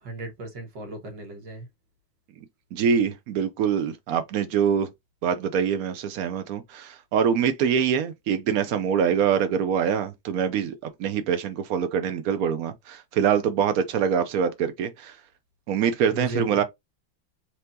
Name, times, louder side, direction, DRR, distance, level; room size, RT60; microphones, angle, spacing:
voice 1, 0.0-1.7 16.1-16.6, right 2 dB, 65° right, 1.9 m, -35 dB
voice 2, 2.4-4.9 5.2-15.2 15.7-16.6, right 7 dB, 80° right, 0.8 m, -24 dB
4.4 x 3.4 x 2.6 m
omnidirectional pair, 2.2 m